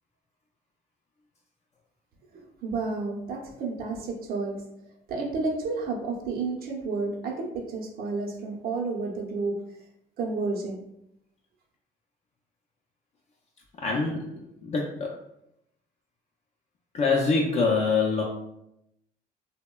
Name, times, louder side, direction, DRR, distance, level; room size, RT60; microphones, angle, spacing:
voice 1, 2.3-4.6 5.1-9.5 10.2-10.8, right 3 dB, 60° right, 0 dB, 0.6 m, -31 dB
voice 2, 13.8-14.3 14.6-15.1 16.9-18.2, left 4 dB, 40° left, -1 dB, 0.4 m, -24 dB
2.8 x 2.1 x 2.2 m, 0.80 s
cardioid pair, 110°, 17 cm